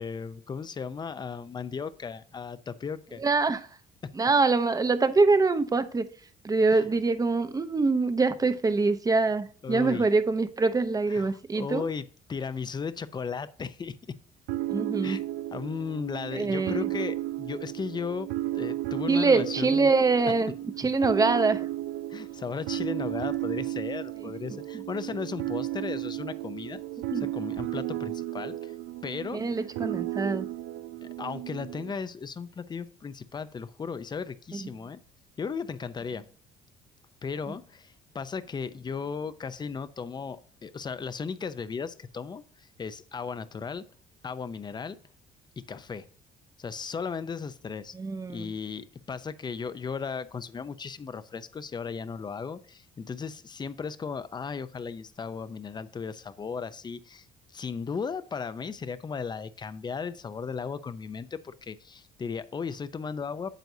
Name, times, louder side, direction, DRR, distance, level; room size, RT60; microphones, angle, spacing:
voice 1, 0.0-3.2 4.0-4.1 6.7-6.9 9.6-10.1 11.1-14.2 15.0-15.2 15.5-19.9 22.1-26.8 27.1-28.7 29.0-29.7 31.0-35.0 35.4-36.3 37.2-43.9 44.2-45.0 45.6-46.0 46.6-47.9 48.3-57.3 57.5-63.5, left 5 dB, 25° left, 0.6 m, -36 dB
voice 2, 3.2-3.7 4.2-6.1 6.4-11.8 14.7-15.2 16.3-16.8 19.1-20.5 20.8-21.6 27.1-27.2 29.3-30.5 34.5-34.7 47.9-48.5, right 3 dB, 20° right, 0.8 m, -24 dB
sound 1, 14.5-31.9, right 15 dB, 90° right, 0.5 m, -34 dB
9.0 x 7.9 x 2.7 m
cardioid pair, 110°, 17 cm